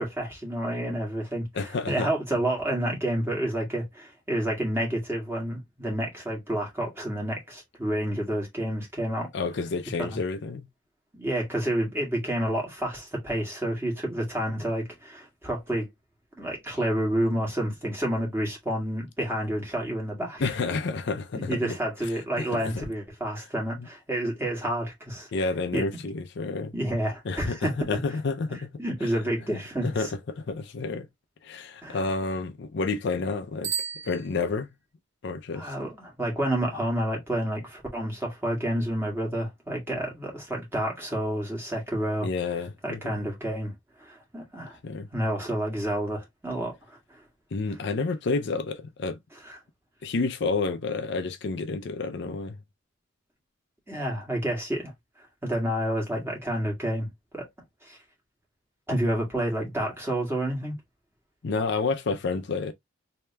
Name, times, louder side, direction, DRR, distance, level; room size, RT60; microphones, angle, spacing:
voice 1, 0.0-9.3 10.0-10.2 11.1-15.9 16.4-20.5 21.3-25.3 25.7-25.8 26.7-27.7 28.5-30.1 31.8-32.0 35.5-42.3 42.8-43.7 44.0-44.8 45.1-47.2 49.4-49.6 53.9-54.9 55.4-57.5 57.8-58.0 58.9-60.8, right 1 dB, 10° right, 1.7 m, -29 dB
voice 2, 1.5-2.1 9.3-10.7 20.4-21.8 22.4-22.9 23.8-23.9 25.3-26.7 27.3-28.7 29.8-31.1 31.4-33.7 34.1-34.7 35.2-35.7 42.2-43.0 44.8-45.1 47.5-49.2 50.0-52.6 61.4-62.7, left 4 dB, 60° left, 0.5 m, -29 dB
Bicycle bell, 33.6-34.9, right 8 dB, 85° right, 1.4 m, -34 dB
3.3 x 2.8 x 3.2 m
head